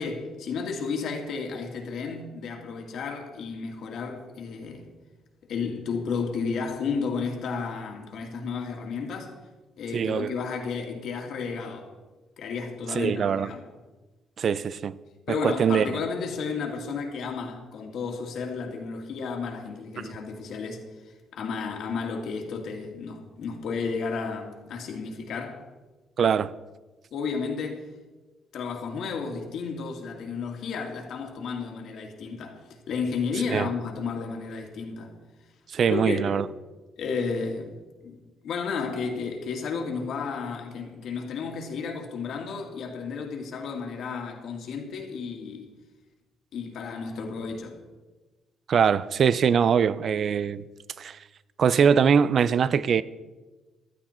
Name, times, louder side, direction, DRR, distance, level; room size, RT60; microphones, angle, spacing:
voice 1, 0.0-4.9 5.5-9.3 9.8-11.9 12.4-13.6 15.3-20.9 21.3-25.6 27.1-27.9 28.5-32.6 32.9-35.2 35.9-36.4 37.0-37.8 38.0-45.7 46.5-47.8, left 5 dB, 65° left, 2.3 m, -32 dB
voice 2, 9.9-10.3 12.9-13.5 14.4-14.9 15.3-15.9 26.2-26.5 33.5-33.7 35.7-36.4 48.7-50.6 51.0-51.2 51.6-53.0, right 7 dB, 45° right, 0.5 m, -22 dB
15.0 x 12.0 x 4.4 m
cardioid pair, 140°, 0 cm